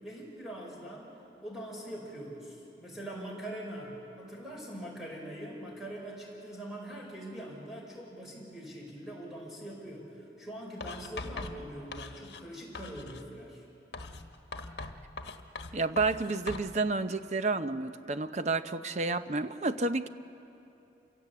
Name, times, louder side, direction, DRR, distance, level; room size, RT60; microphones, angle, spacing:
voice 1, 0.0-1.1 1.4-13.7, right 1 dB, ahead, -3 dB, 5.1 m, -43 dB
Writing, 10.8-12.5 12.7-13.3 13.9-16.7, left 3 dB, 70° left, 1.3 m, -42 dB
voice 2, 15.7-20.1, right 3 dB, 40° right, 11 dB, 0.7 m, -30 dB
29.0 x 16.5 x 8.4 m, 2.9 s
head